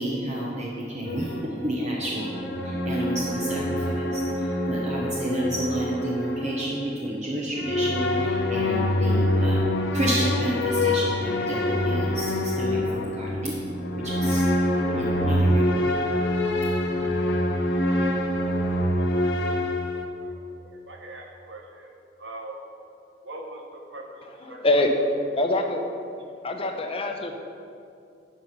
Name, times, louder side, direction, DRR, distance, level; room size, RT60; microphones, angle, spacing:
voice 1, 0.0-2.3 2.6-9.6 9.9-14.4 14.9-16.0, right 1 dB, 40° right, -3 dB, 0.8 m, -30 dB
sound 1, 1.1-6.9 7.6-20.0, left 1 dB, 70° left, 0.9 m, -25 dB
voice 2, 20.2-21.9 22.2-22.6 23.2-24.9, right 2 dB, 80° right, 1 dB, 1.2 m, -42 dB
voice 3, 24.5-24.9 25.4-25.8 26.4-27.4, left 2 dB, 30° left, 4 dB, 0.8 m, -24 dB
10.5 x 4.8 x 5.7 m, 2.5 s
head